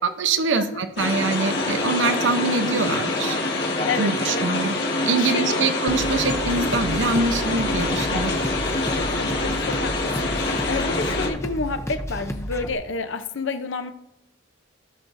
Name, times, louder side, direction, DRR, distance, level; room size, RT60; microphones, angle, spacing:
voice 1, 0.0-3.4 4.0-4.8 5.0-8.4, right 4 dB, 75° right, 9 dB, 0.7 m, -24 dB
sound 1, 1.0-11.3, left 2 dB, 55° left, 1.7 m, -25 dB
voice 2, 3.8-4.4 5.0-5.7 9.0-13.9, left 4 dB, 80° left, 9 dB, 0.7 m, -30 dB
sound 2, 5.9-12.7, equal, 15° left, 0.6 m, -32 dB
16.0 x 6.2 x 2.6 m, 0.89 s
head